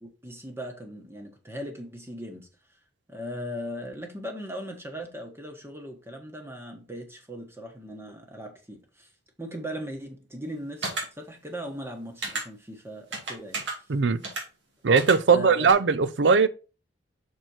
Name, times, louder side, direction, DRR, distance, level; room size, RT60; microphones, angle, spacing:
voice 1, 0.0-2.5 3.1-9.1 9.4-10.9 11.2-13.8 15.3-15.8, equal, 15° right, 1.5 m, -39 dB
sound 1, 10.8-11.0 12.2-12.4 13.1-13.7 14.2-14.4 15.0-15.1 15.7-15.8, right 3 dB, 85° right, 2.5 m, -31 dB
voice 2, 13.9-14.2 14.8-16.5, right 5 dB, 70° right, 0.5 m, -20 dB
6.4 x 4.4 x 4.4 m
head